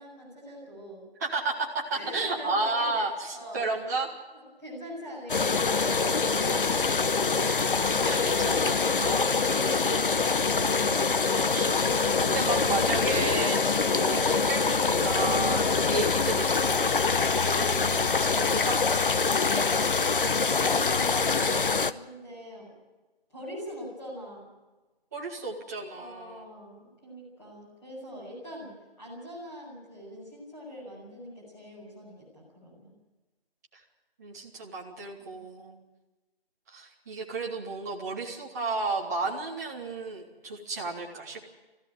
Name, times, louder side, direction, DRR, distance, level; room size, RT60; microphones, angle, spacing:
voice 1, 0.0-1.1 1.9-3.7 4.3-6.5 20.5-22.7 23.3-24.5 25.9-32.9 35.3-35.4, equal, 10° left, -7 dB, 6.6 m, -43 dB
voice 2, 1.2-4.1 7.4-10.4 11.5-11.7 12.2-18.8 25.1-26.4 34.2-35.8 36.7-41.4, right 3 dB, 15° right, -4 dB, 1.9 m, -33 dB
sound 1, 5.3-21.9, left 4 dB, 60° left, 0.8 m, -25 dB
19.5 x 15.5 x 9.0 m, 1.2 s
figure-of-eight pair, 165°, 30 cm